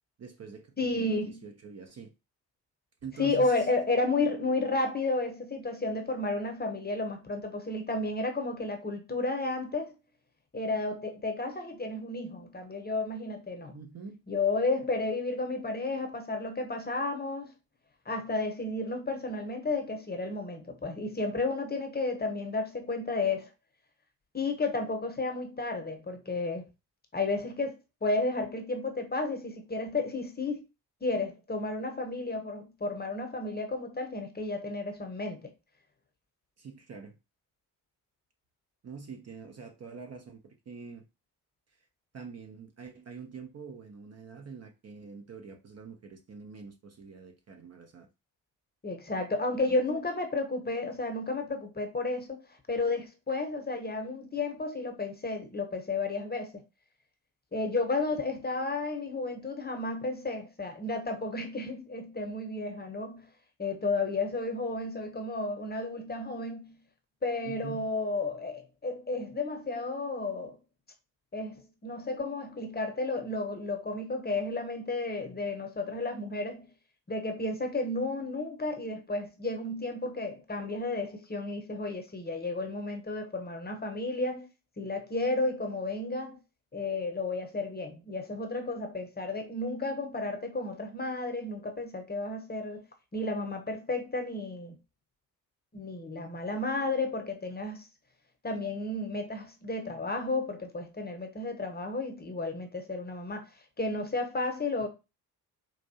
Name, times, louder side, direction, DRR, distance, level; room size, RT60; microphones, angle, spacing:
voice 1, 0.2-2.1 3.0-3.7 13.7-14.2 36.6-37.2 38.8-41.0 41.8-41.9 42.1-48.1 49.7-49.8 67.4-67.8, right 5 dB, 35° right, 0.7 m, -45 dB
voice 2, 0.8-1.4 3.2-9.9 10.5-13.8 14.3-17.5 18.1-23.5 24.3-26.7 27.1-30.6 31.0-35.5 48.8-52.4 52.7-56.5 57.5-63.3 63.6-66.8 67.2-70.6 71.3-76.7 77.1-84.5 84.8-86.4 86.7-92.8 93.1-94.8 95.7-97.9 98.4-104.9, left 3 dB, 20° left, 0.9 m, -32 dB
4.5 x 2.6 x 2.8 m
hypercardioid pair, 45°, 47 cm